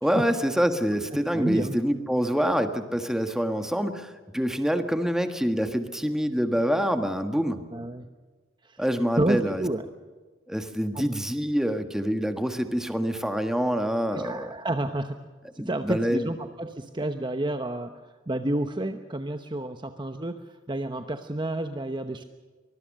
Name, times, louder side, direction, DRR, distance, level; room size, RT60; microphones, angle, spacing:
voice 1, 0.0-7.6 8.8-9.6 10.5-14.5 15.6-16.3, equal, ahead, 7 dB, 1.5 m, -26 dB
voice 2, 1.1-1.8 7.7-8.1 8.6-8.8 9.2-9.8 10.9-11.1 14.1-15.2 15.5-17.9 18.3-22.2, right 1 dB, 20° right, 7 dB, 0.9 m, -30 dB
24.0 x 21.0 x 6.5 m, 1.3 s
head